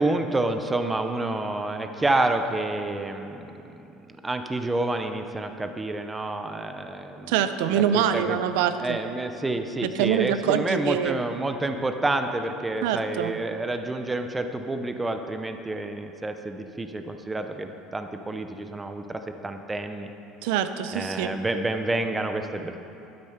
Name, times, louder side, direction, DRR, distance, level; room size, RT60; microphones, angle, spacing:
voice 1, 0.0-7.3 7.7-8.4 8.8-20.1 20.9-22.8, right 2 dB, 10° right, 7 dB, 0.6 m, -29 dB
voice 2, 7.3-9.0 9.8-11.2 12.8-13.4 20.4-21.4, right 9 dB, 80° right, 11 dB, 0.6 m, -25 dB
12.0 x 9.5 x 5.8 m, 2.8 s
cardioid pair, 165°, 0 cm